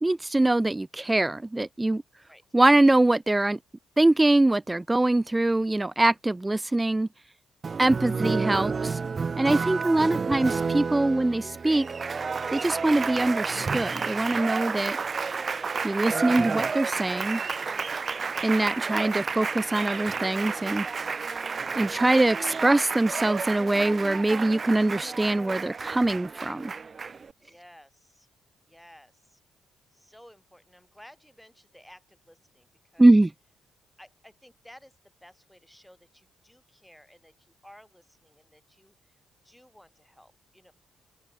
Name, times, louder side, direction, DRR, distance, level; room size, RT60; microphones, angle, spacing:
voice 1, 0.0-2.0 2.5-3.6 4.0-7.1 7.8-9.0 9.4-11.9 12.5-15.0 15.8-17.4 18.4-20.9 21.7-26.7 33.0-33.3, right 2 dB, 15° right, 0.8 m, -23 dB
Applause, 7.6-27.3, right 5 dB, 35° right, 1.4 m, -31 dB
voice 2, 27.5-28.3 28.6-29.4 29.9-33.1 34.0-39.2 39.4-40.7, equal, 5° left, 6.4 m, -55 dB
open air
cardioid pair, 90°, 0 cm